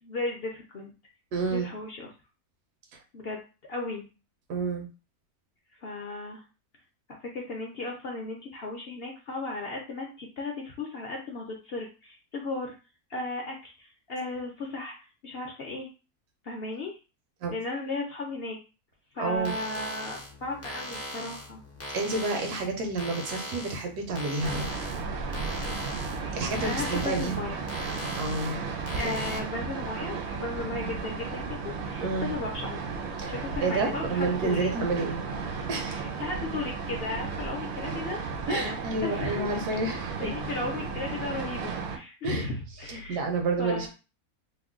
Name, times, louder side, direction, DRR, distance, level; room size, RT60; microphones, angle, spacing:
voice 1, 0.0-0.9 1.5-2.1 3.1-3.4 3.7-4.1 5.8-6.4 7.3-12.7 13.1-14.9 15.2-15.9 16.4-17.0 17.5-18.6 19.1-21.6 26.2-27.6 28.9-32.8 33.3-34.7 35.9-38.2 38.5-39.5 40.2-43.2 43.6-43.9, left 3 dB, 55° left, 0 dB, 0.7 m, -35 dB
voice 2, 1.3-1.7 2.9-3.0 4.5-4.9 17.4-17.5 19.2-19.5 21.9-24.7 26.3-27.4 28.1-28.6 29.0-29.2 32.0-32.3 33.2-35.2 35.7-36.0 38.5-40.3 42.2-42.5 42.9-43.9, right 3 dB, 90° right, 3 dB, 1.3 m, -30 dB
sound 1, 19.4-29.4, equal, 20° left, 0.4 m, -40 dB
sound 2, 24.4-42.0, right 4 dB, 65° right, 0.7 m, -34 dB
3.1 x 2.2 x 3.6 m, 0.31 s
omnidirectional pair, 1.6 m